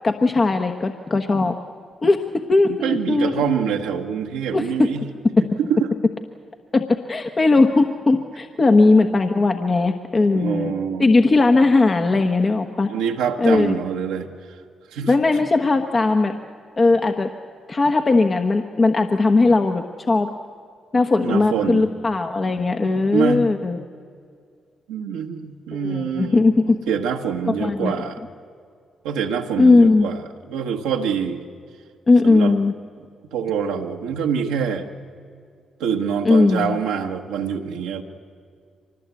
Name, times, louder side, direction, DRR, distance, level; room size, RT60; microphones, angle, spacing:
voice 1, 0.0-1.5 2.0-2.2 2.5-3.4 4.5-4.7 6.7-6.8 7.1-10.7 11.0-12.9 13.4-13.7 15.1-16.3 16.8-17.3 17.7-20.3 20.9-23.8 25.7-26.8 27.5-28.0 29.6-30.1 32.1-32.7 36.2-36.8, left 3 dB, 40° left, 5 dB, 1.3 m, -18 dB
voice 2, 2.7-5.0 5.7-5.9 10.3-11.1 12.9-14.3 14.9-15.4 21.2-21.9 23.1-23.5 24.9-28.2 29.0-30.2 30.5-31.4 32.2-32.5 33.3-34.9 35.8-38.0, right 7 dB, 85° right, 2 dB, 1.3 m, -25 dB
24.5 x 20.0 x 8.4 m, 2.2 s
hypercardioid pair, 45°, 0 cm